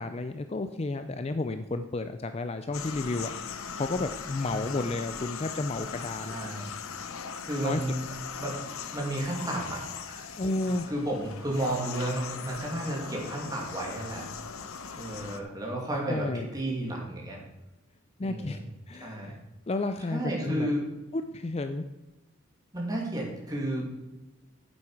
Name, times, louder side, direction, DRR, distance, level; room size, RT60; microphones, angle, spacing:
voice 1, 0.0-3.3 3.8-6.6 7.1-7.2 7.6-7.8 10.4-10.9 16.1-16.5 18.2-18.6 18.9-19.4 19.7-20.7 21.1-21.8, left 2 dB, 30° left, 9 dB, 0.4 m, -32 dB
sound 1, 2.7-15.4, left 6 dB, 75° left, 0.7 m, -39 dB
voice 2, 6.2-6.7 7.5-8.0 8.4-8.6 8.9-9.8 10.1-10.3 10.9-14.3 15.0-17.4 18.2-18.7 18.9-19.3 20.1-20.9 22.7-23.9, right 1 dB, 15° right, -2 dB, 2.4 m, -32 dB
9.5 x 7.6 x 4.8 m, 1.1 s
head